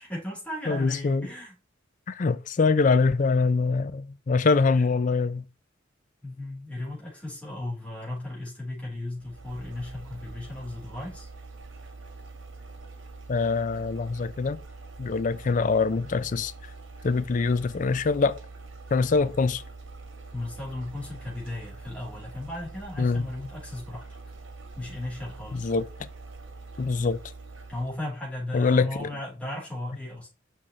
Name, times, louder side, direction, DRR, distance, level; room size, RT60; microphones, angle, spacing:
voice 1, 0.0-1.5 6.2-11.3 20.3-24.1 24.8-25.7 27.7-30.3, left 1 dB, 5° left, 3.6 m, -36 dB
voice 2, 0.7-1.3 2.1-5.5 13.3-14.6 15.0-16.5 17.0-18.4 18.9-19.6 23.0-23.3 25.5-25.8 26.8-27.2 28.5-29.1, left 4 dB, 40° left, 0.4 m, -24 dB
sound 1, 9.2-28.1, right 3 dB, 85° right, 1.5 m, -44 dB
6.3 x 5.8 x 3.1 m
head